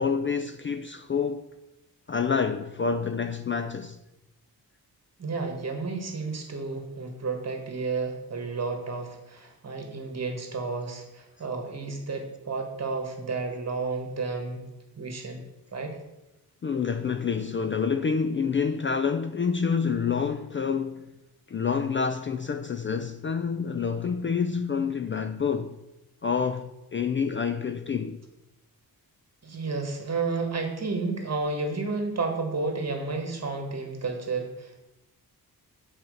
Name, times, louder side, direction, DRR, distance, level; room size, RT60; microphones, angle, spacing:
voice 1, 0.0-1.4 2.1-4.0 16.6-21.1 21.5-25.8 26.2-28.2, left 6 dB, 35° left, 0.4 m, -28 dB
voice 2, 5.2-14.6 15.0-15.4 15.7-16.0 29.4-34.8, right 4 dB, 45° right, 1.6 m, -31 dB
7.6 x 4.2 x 6.4 m
wide cardioid pair, 100°, 37 cm